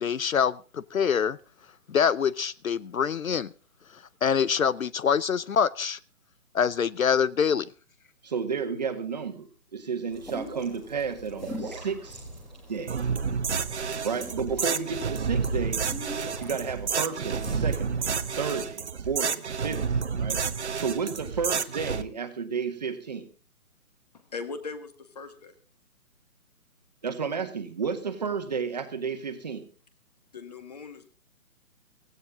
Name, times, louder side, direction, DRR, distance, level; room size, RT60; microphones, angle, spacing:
voice 1, 0.0-1.4 1.9-3.5 4.2-6.0 6.5-7.7, left 7 dB, 65° left, 20 dB, 0.8 m, -25 dB
voice 2, 8.2-12.2 12.7-13.0 14.0-15.8 16.4-18.1 18.4-23.3 27.0-29.6, right 5 dB, 30° right, 7 dB, 1.7 m, -32 dB
sound 1, 10.1-18.7, equal, ahead, 1.4 m, -41 dB
sound 2, 12.9-22.0, right 6 dB, 50° right, 1.2 m, -30 dB
voice 3, 24.1-25.5 30.3-31.1, left 4 dB, 25° left, 10 dB, 1.8 m, -39 dB
16.5 x 16.5 x 3.7 m, 0.34 s
hypercardioid pair, 175°, 44 cm